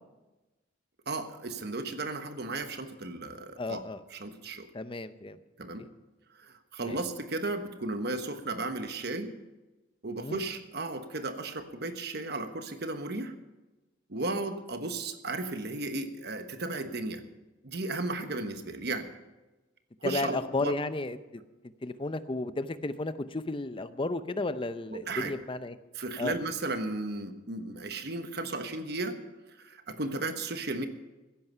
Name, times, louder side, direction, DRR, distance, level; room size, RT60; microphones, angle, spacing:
voice 1, 1.1-3.8 4.1-4.7 5.6-5.8 6.4-9.3 10.0-13.3 14.1-17.2 17.6-19.1 20.0-20.7 24.9-25.3 25.9-29.2 29.6-30.9, right 2 dB, 60° right, 8 dB, 1.2 m, -35 dB
voice 2, 3.6-4.0 4.7-5.4 5.8-5.9 6.8-7.0 10.2-10.4 20.0-21.4 21.8-25.8 26.2-26.4, left 2 dB, 25° left, 12 dB, 0.6 m, -33 dB
15.5 x 10.5 x 5.6 m, 1.1 s
head